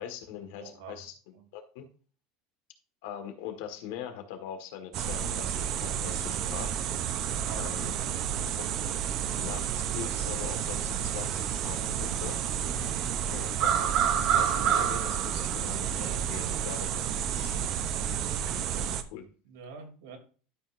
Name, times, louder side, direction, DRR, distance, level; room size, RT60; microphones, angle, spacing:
voice 1, 0.0-1.8 3.0-6.7 7.6-7.9 8.6-8.7 9.4-12.4 13.3-17.7 18.8-19.3, left 9 dB, 75° left, 6 dB, 1.8 m, -42 dB
voice 2, 0.6-1.0 1.3-1.5 7.3-7.6 8.0-8.2 12.7-13.0 19.4-20.2, right 4 dB, 85° right, 3 dB, 3.0 m, -46 dB
sound 1, 4.9-19.0, right 9 dB, 45° right, 0.7 m, -30 dB
12.5 x 5.6 x 2.6 m, 0.38 s
supercardioid pair, 140°, 0 cm